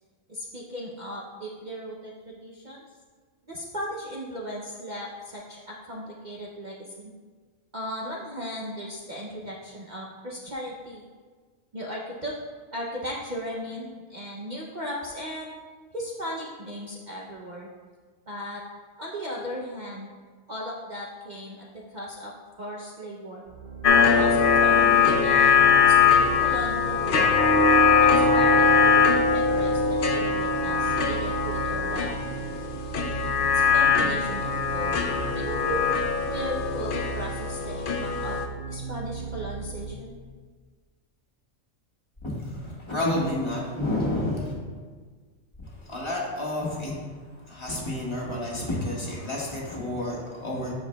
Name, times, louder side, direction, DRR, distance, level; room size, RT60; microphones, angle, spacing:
voice 1, 0.3-2.8 3.5-7.1 7.7-11.0 11.7-12.4 12.7-15.5 15.9-17.7 18.3-18.6 19.0-20.1 20.5-22.3 22.6-23.5 24.1-27.4 28.0-32.1 32.9-35.0 35.3-35.8 36.3-38.4 38.7-40.2, equal, 40° right, -3 dB, 0.7 m, -37 dB
sound 1, 23.5-39.9, right 6 dB, 80° right, 0.4 m, -36 dB
sound 2, 23.8-38.5, left 5 dB, 55° left, 0.6 m, -21 dB
voice 2, 42.2-44.5 45.8-47.0 47.5-50.7, left 1 dB, 20° left, -4 dB, 1.5 m, -30 dB
14.0 x 4.8 x 2.3 m, 1.5 s
omnidirectional pair, 1.4 m